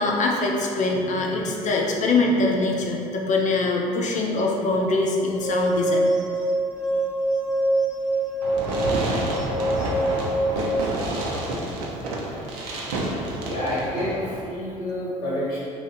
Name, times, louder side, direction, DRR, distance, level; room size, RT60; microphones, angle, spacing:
voice 1, 0.0-6.1 9.3-10.9, left 2 dB, 40° left, 0 dB, 0.5 m, -24 dB
voice 2, 0.9-1.3 13.4-15.6, left 1 dB, 80° left, -8 dB, 1.2 m, -29 dB
sound 1, 5.3-10.7, right 1 dB, 5° right, 0.7 m, -25 dB
Fireworks, 8.4-14.4, right 1 dB, 65° right, 0.6 m, -28 dB
2.8 x 2.5 x 4.1 m, 2.5 s
hypercardioid pair, 60°, 19 cm